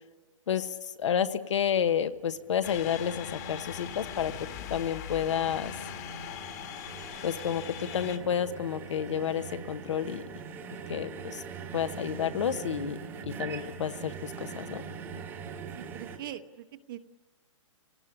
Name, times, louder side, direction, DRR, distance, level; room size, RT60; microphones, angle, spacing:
voice 1, 0.5-4.3 4.7-5.7 7.2-10.2 10.9-11.4 11.7-13.0 13.2-14.8, left 8 dB, 65° left, 10 dB, 1.2 m, -30 dB
sound 1, 1.9-16.2, right 6 dB, 15° right, 1.3 m, -43 dB
sound 2, 2.6-8.2, left 8 dB, 30° left, 1.7 m, -40 dB
voice 2, 15.7-17.0, right 12 dB, 40° right, 8 dB, 1.2 m, -42 dB
29.5 x 18.5 x 9.8 m, 1.4 s
hypercardioid pair, 165°, 17 cm